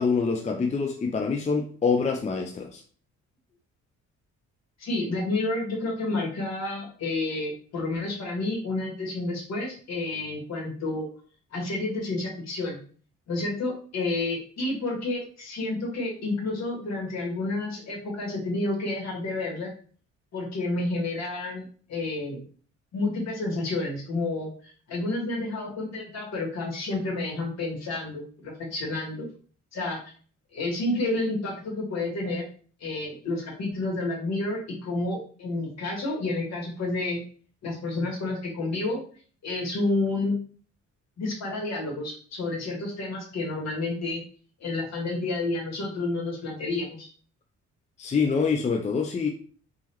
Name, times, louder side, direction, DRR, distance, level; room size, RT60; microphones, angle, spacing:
voice 1, 0.0-2.8 48.0-49.3, left 5 dB, 25° left, 0.5 m, -25 dB
voice 2, 4.8-11.1 11.5-12.8 13.3-19.7 20.3-22.4 22.9-29.3 29.7-30.0 30.5-32.4 32.8-37.2 37.6-39.0 39.4-40.4 41.2-44.2 44.6-47.1, left 2 dB, 60° left, 2.0 m, -30 dB
3.6 x 3.2 x 3.1 m
cardioid pair, 90°, 30 cm